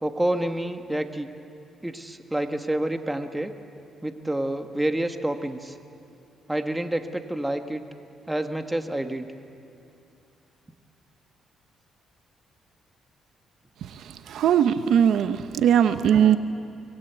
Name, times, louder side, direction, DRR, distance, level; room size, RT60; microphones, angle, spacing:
voice 1, 0.0-1.3 1.8-3.5 4.0-5.7 6.5-7.8 8.3-9.3, right 1 dB, 10° right, 7 dB, 1.5 m, -28 dB
voice 2, 14.3-16.4, right 9 dB, 75° right, 10 dB, 0.8 m, -19 dB
25.0 x 19.5 x 8.2 m, 2.7 s
cardioid pair, 90°, 0 cm